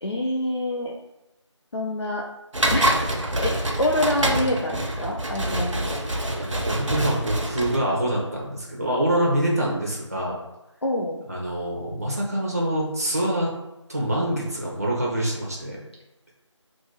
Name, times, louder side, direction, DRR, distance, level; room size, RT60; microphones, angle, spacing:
voice 1, 0.0-0.9 1.7-2.2 2.7-5.9 10.8-11.2, left 1 dB, 60° left, -2 dB, 0.5 m, -26 dB
sound 1, 2.5-7.8, right 1 dB, 80° right, 0.8 m, -25 dB
voice 2, 6.4-10.4 11.3-13.5 13.9-15.8, right 1 dB, 30° right, -4 dB, 0.7 m, -25 dB
2.8 x 2.7 x 3.7 m, 0.95 s
figure-of-eight pair, 180°, 16 cm